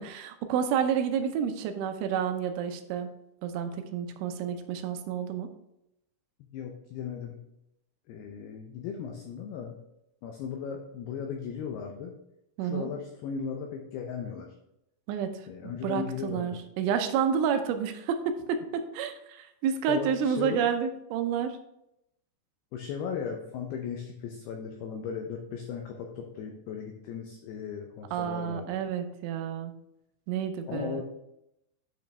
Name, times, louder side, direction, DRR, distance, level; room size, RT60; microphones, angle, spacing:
voice 1, 0.0-3.1 3.4-5.5 12.6-12.9 15.1-15.4 15.8-21.6 28.1-29.7 30.3-31.0, right 7 dB, 85° right, 7 dB, 3.1 m, -30 dB
voice 2, 6.5-7.4 8.1-9.8 10.2-12.1 12.6-14.5 15.5-16.6 19.9-20.6 22.7-28.8 30.6-31.0, left 7 dB, 85° left, 2 dB, 2.3 m, -37 dB
9.2 x 5.1 x 3.4 m, 0.84 s
omnidirectional pair, 5.5 m